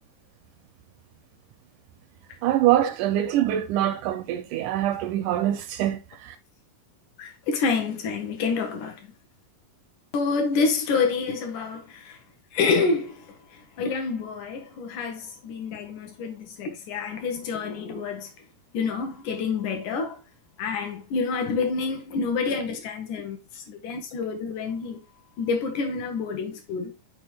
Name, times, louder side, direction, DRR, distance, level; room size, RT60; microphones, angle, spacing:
voice 1, 2.4-6.4, right 12 dB, 80° right, 1.9 m, -24 dB
voice 2, 7.2-9.0 10.1-12.2 12.5-18.3 18.7-20.2 20.6-25.0 25.4-26.9, left 4 dB, 70° left, 2.4 m, -28 dB
6.1 x 4.6 x 3.3 m
omnidirectional pair, 3.9 m